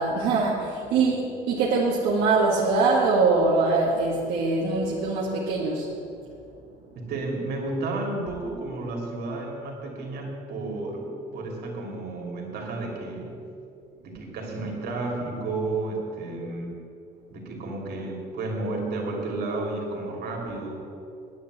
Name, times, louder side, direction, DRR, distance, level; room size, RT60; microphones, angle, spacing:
voice 1, 0.0-5.9, right 3 dB, 90° right, -5 dB, 1.6 m, -23 dB
voice 2, 6.9-13.4 14.0-16.8 17.3-20.8, right 2 dB, 70° right, 0 dB, 2.9 m, -32 dB
9.5 x 8.9 x 7.9 m, 2.5 s
cardioid pair, 110°, 17 cm